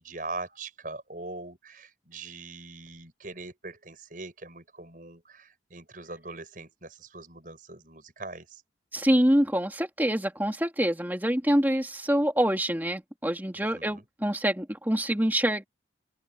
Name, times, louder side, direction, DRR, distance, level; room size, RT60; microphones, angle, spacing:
voice 1, 0.0-8.6 13.5-14.0, right 3 dB, 45° right, 7.7 m, -42 dB
voice 2, 8.9-15.6, equal, 10° right, 2.5 m, -25 dB
head